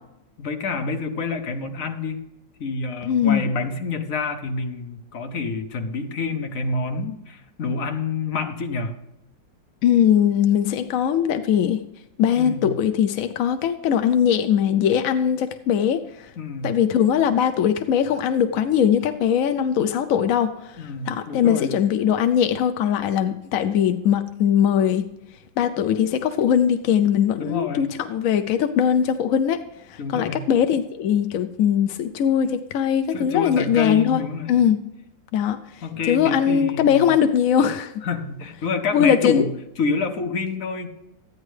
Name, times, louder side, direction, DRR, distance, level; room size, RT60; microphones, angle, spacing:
voice 1, 0.4-2.2 2.6-9.0 12.4-12.7 16.4-16.8 20.8-21.7 27.4-27.9 30.0-30.4 33.1-34.6 35.8-37.1 38.0-39.5 39.8-40.9, left 4 dB, 50° left, 6 dB, 1.2 m, -27 dB
voice 2, 3.0-3.4 9.8-11.8 12.2-16.3 16.6-25.0 25.6-29.6 29.9-34.2 34.5-34.8 35.3-37.9 38.9-39.5, left 9 dB, 70° left, 8 dB, 0.8 m, -20 dB
13.5 x 9.6 x 3.2 m, 0.88 s
omnidirectional pair, 2.0 m